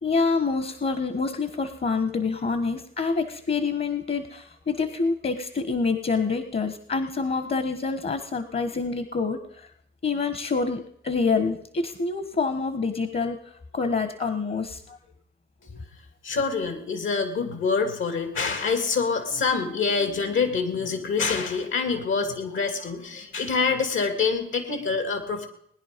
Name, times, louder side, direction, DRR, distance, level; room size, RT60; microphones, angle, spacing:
voice 1, 0.0-9.7 10.0-15.0 15.7-15.8, left 4 dB, 50° left, 10 dB, 1.4 m, -27 dB
voice 2, 16.2-25.5, left 5 dB, 75° left, 7 dB, 2.6 m, -26 dB
19.5 x 10.5 x 5.2 m, 0.70 s
cardioid pair, 55°, 20 cm